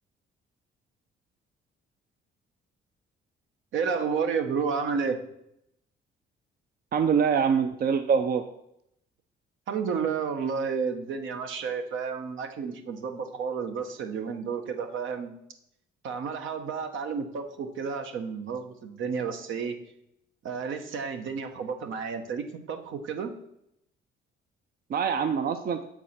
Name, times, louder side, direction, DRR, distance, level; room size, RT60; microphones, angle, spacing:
voice 1, 3.7-5.2 9.7-15.3 16.0-19.8 20.4-23.3, right 6 dB, 75° right, 6 dB, 1.0 m, -31 dB
voice 2, 6.9-8.4 24.9-25.8, right 6 dB, 50° right, 8 dB, 0.5 m, -24 dB
6.9 x 4.7 x 5.8 m, 0.79 s
cardioid pair, 90°, 20 cm